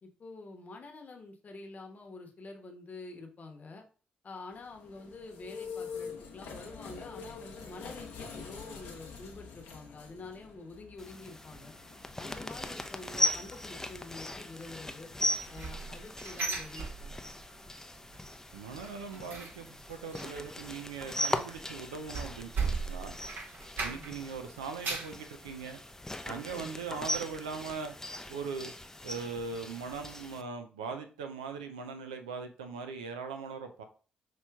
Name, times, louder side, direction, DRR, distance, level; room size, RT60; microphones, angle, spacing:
voice 1, 0.0-3.8 4.2-11.7 12.2-15.1 15.5-17.2 23.8-24.1 26.5-26.7, left 3 dB, 45° left, 3 dB, 1.0 m, -47 dB
sound 1, 4.5-15.9, left 5 dB, 80° left, 0.8 m, -47 dB
sound 2, 11.0-30.4, left 1 dB, 15° left, 0.5 m, -39 dB
sound 3, 15.2-17.5 17.8-18.2 18.5-24.3 24.6-25.2 25.7-25.8 26.2-26.3, right 4 dB, 60° right, 1.1 m, -38 dB
voice 2, 18.5-23.2 23.8-25.8 26.2-27.9 28.3-28.7 29.0-33.8, right 5 dB, 90° right, 7 dB, 0.4 m, -40 dB
5.8 x 3.0 x 2.3 m, 0.38 s
hypercardioid pair, 40°, 4 cm